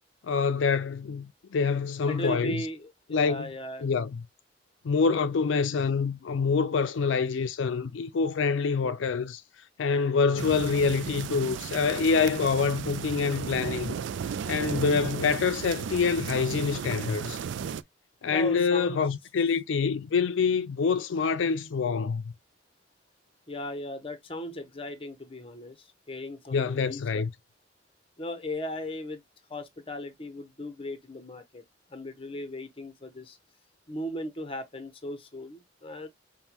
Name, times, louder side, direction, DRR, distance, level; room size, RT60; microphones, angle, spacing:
voice 1, 0.2-2.7 3.1-3.5 3.8-4.2 4.8-9.4 9.8-14.0 14.5-17.4 18.2-22.3 26.5-27.3, left 5 dB, 85° left, 0.4 m, -26 dB
voice 2, 2.1-3.9 18.3-19.0 23.5-27.0 28.2-29.2 29.5-31.6 31.9-33.4 33.9-36.1, left 1 dB, 30° left, 0.8 m, -37 dB
sound 1, 10.4-17.8, right 7 dB, 75° right, 0.3 m, -35 dB
5.3 x 2.2 x 2.9 m
head